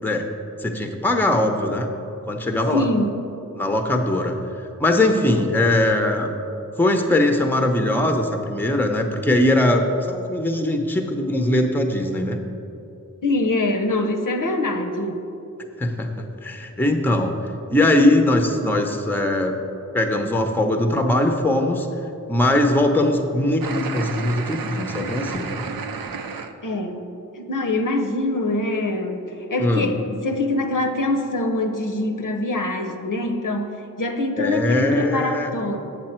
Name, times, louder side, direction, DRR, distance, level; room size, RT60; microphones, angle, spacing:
voice 1, 0.6-1.9 2.3-2.9 3.6-4.4 4.8-6.3 6.8-12.4 15.8-17.3 17.7-19.6 19.9-21.9 22.3-25.6 29.6-29.9 34.4-35.6, left 1 dB, 5° left, 5 dB, 0.6 m, -21 dB
voice 2, 2.7-3.2 13.2-15.2 26.6-27.1 27.4-35.8, left 2 dB, 65° left, 4 dB, 0.7 m, -24 dB
sound 1, 23.6-26.5, right 5 dB, 80° right, 0.5 m, -31 dB
7.7 x 6.6 x 4.3 m, 2.9 s
wide cardioid pair, 60°, 34 cm